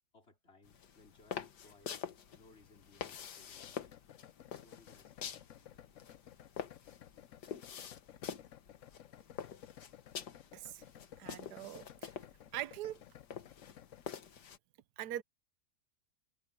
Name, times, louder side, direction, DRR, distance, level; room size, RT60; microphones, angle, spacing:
voice 1, 0.1-4.0 4.6-5.9, left 2 dB, 40° left, 5.0 m, -64 dB
sound 1, 0.6-14.6, left 8 dB, 85° left, 1.8 m, -47 dB
sound 2, 3.6-14.1, left 11 dB, 60° left, 0.9 m, -56 dB
voice 2, 10.5-10.8 11.2-12.1 12.5-13.0 15.0-15.2, right 12 dB, 75° right, 1.3 m, -42 dB
omnidirectional pair, 1.7 m